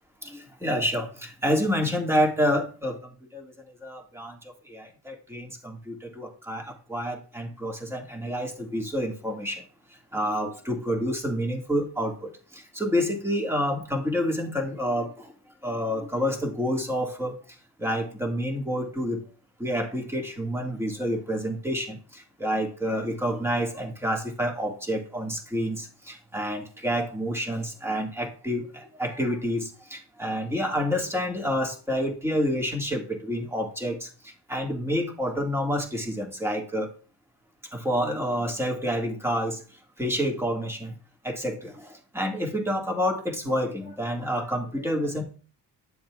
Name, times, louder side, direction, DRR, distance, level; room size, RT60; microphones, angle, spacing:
voice 1, 0.2-3.5 3.8-4.4 4.7-9.6 10.1-15.3 15.6-17.4 17.8-19.2 19.6-34.1 34.5-36.9 37.7-39.6 40.0-41.0 41.2-45.2, equal, 5° right, 0 dB, 1.9 m, -28 dB
11.5 x 7.1 x 2.4 m, 0.39 s
cardioid pair, 100°, 42 cm